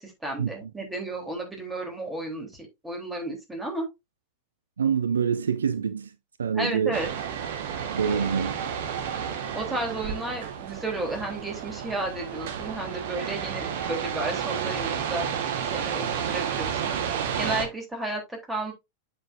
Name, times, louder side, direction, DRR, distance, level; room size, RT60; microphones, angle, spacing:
voice 1, 0.0-3.9 6.5-7.1 9.5-15.3 15.7-18.7, right 2 dB, 10° right, 3.4 m, -33 dB
voice 2, 4.8-6.1 6.4-7.0 7.9-8.6, right 7 dB, 70° right, 0.6 m, -26 dB
sound 1, 6.9-17.7, right 8 dB, 55° right, 1.3 m, -31 dB
7.8 x 6.8 x 2.6 m
figure-of-eight pair, 90°, 0 cm